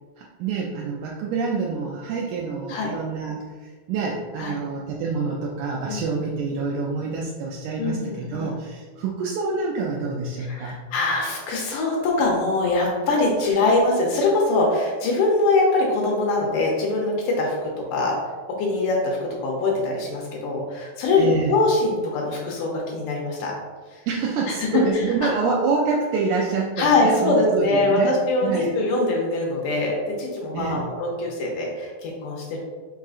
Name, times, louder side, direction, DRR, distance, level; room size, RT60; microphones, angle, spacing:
voice 1, 0.2-10.8 21.2-21.6 24.1-28.1 28.4-28.7 30.5-30.9, right 4 dB, 90° right, -3 dB, 1.7 m, -27 dB
voice 2, 7.8-8.5 10.4-18.2 18.6-23.5 23.9-24.0 24.5-24.7 26.8-32.6, left 2 dB, 75° left, -1 dB, 2.1 m, -23 dB
5.4 x 3.6 x 2.4 m, 1.5 s
omnidirectional pair, 4.1 m